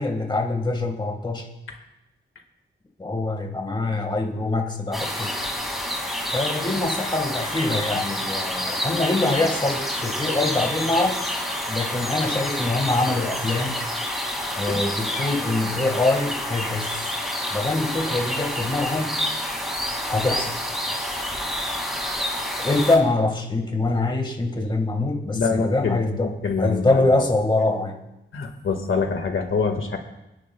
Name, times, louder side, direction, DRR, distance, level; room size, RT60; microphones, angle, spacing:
voice 1, 0.0-1.5 3.0-5.3 6.3-11.3 11.7-13.7 14.6-17.1 17.5-19.1 20.1-20.6 22.6-26.3 26.6-28.0, left 2 dB, 20° left, 2 dB, 1.7 m, -24 dB
sound 1, 4.9-23.0, equal, ahead, 2.3 m, -28 dB
voice 2, 25.3-27.0 28.3-30.0, left 5 dB, 80° left, 4 dB, 1.8 m, -25 dB
28.5 x 10.5 x 2.3 m, 0.95 s
wide cardioid pair, 165°, 21 cm